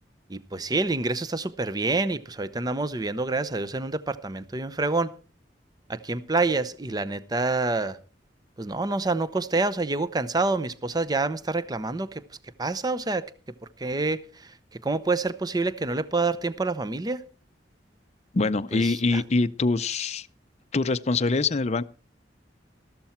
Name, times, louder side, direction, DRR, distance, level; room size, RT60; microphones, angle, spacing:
voice 1, 0.3-5.1 5.9-8.0 8.6-12.2 12.6-13.3 13.8-14.5 14.8-17.2 18.7-19.2, right 3 dB, 25° right, 0.7 m, -27 dB
voice 2, 18.3-20.3 20.7-21.8, left 3 dB, 40° left, 0.5 m, -24 dB
13.5 x 13.0 x 4.4 m
head